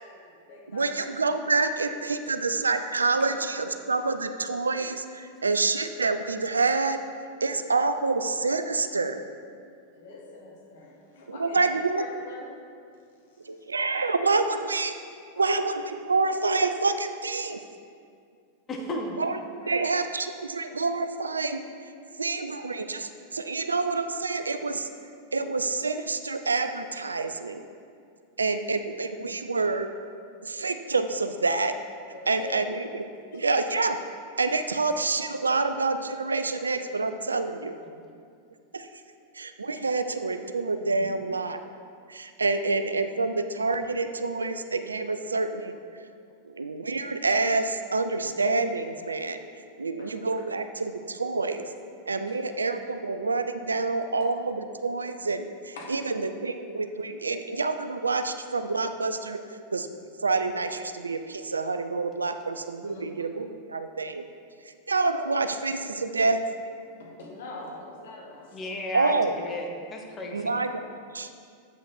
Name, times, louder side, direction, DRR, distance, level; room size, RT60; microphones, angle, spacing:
voice 1, 0.0-1.0 3.2-3.3 9.9-11.6 11.9-12.5 13.3-13.6 15.3-15.6 19.6-19.9 32.1-32.7 33.3-33.4 41.0-41.1 50.0-50.4 52.3-52.4 55.8-55.9 62.8-63.1 67.0-68.6, left 2 dB, 60° left, -2 dB, 1.5 m, -44 dB
voice 2, 0.7-7.0 7.4-9.2 11.3-12.0 13.5-14.9 15.4-17.6 19.2-19.4 19.7-21.6 22.2-24.9 25.3-27.6 28.4-29.9 30.4-31.7 32.3-33.0 33.3-34.0 34.4-37.7 38.7-38.9 39.3-41.6 42.1-45.7 46.4-49.4 49.8-51.6 52.1-59.4 59.7-59.9 60.2-64.3 64.9-66.4 68.9-69.4 70.3-71.3, right 3 dB, 75° right, 9 dB, 0.4 m, -27 dB
voice 3, 18.7-19.2 68.5-70.5, left 1 dB, 25° left, 2 dB, 1.0 m, -34 dB
8.0 x 5.6 x 4.3 m, 2.3 s
figure-of-eight pair, 90°, 0 cm